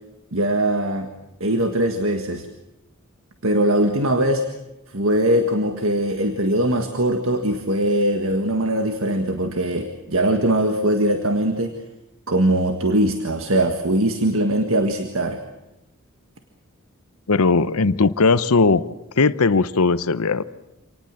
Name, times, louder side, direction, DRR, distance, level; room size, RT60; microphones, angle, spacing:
voice 1, 0.3-1.1 1.4-2.5 3.4-4.5 4.9-11.7 12.3-15.4, right 1 dB, 70° right, 5 dB, 1.7 m, -21 dB
voice 2, 17.3-18.8 19.2-20.4, left 4 dB, 80° left, 14 dB, 0.8 m, -18 dB
27.0 x 19.0 x 7.6 m, 0.92 s
head